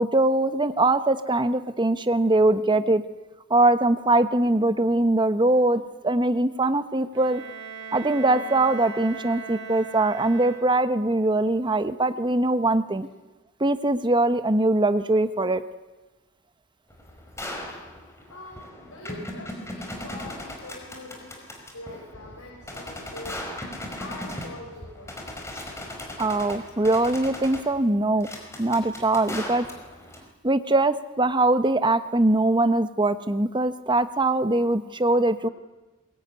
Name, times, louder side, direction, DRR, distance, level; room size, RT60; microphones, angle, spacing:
voice 1, 0.0-3.0 3.5-7.4 7.9-13.1 13.6-15.6 26.2-28.3 28.6-29.7 30.4-35.5, right 2 dB, 20° right, 11 dB, 1.1 m, -22 dB
Bowed string instrument, 7.1-11.1, right 5 dB, 55° right, 4.4 m, -39 dB
sound 1, 16.9-30.2, left 1 dB, 15° left, 4.9 m, -38 dB
voice 2, 18.3-21.4 21.7-23.4 23.6-25.2 26.7-26.9, left 2 dB, 80° left, -2 dB, 6.6 m, -43 dB
22.5 x 22.0 x 9.7 m, 1.2 s
head